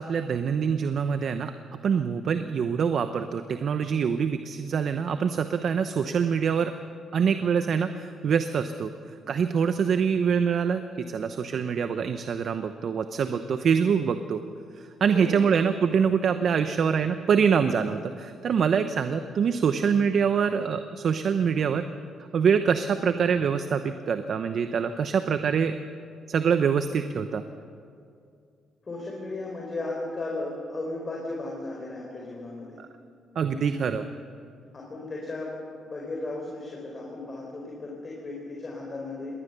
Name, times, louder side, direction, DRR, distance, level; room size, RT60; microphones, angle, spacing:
voice 1, 0.0-1.5 1.8-6.7 7.1-8.9 9.3-14.4 14.8-21.8 22.3-25.8 26.3-27.4 32.8-32.9 33.3-34.1, right 6 dB, 60° right, 9 dB, 0.9 m, -25 dB
voice 2, 28.8-32.8 33.4-33.7 34.7-35.5 35.8-39.3, left 2 dB, 35° left, -2 dB, 4.5 m, -35 dB
21.0 x 17.5 x 6.9 m, 2.4 s
cardioid pair, 90°, 0 cm